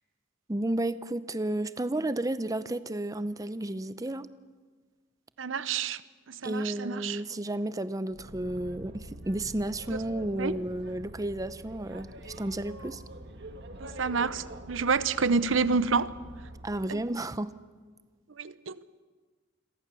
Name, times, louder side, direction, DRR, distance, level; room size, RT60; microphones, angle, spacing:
voice 1, 0.5-4.3 6.4-13.0 16.6-17.5, right 1 dB, 20° right, 0.7 m, -32 dB
voice 2, 5.4-6.0 6.4-7.2 10.4-10.5 13.8-16.1 16.9-17.0 18.4-18.8, right 4 dB, 85° right, 0.8 m, -28 dB
Boat Water vehicle, 8.1-16.9, right 1 dB, 60° right, 1.8 m, -45 dB
29.0 x 22.5 x 6.9 m
head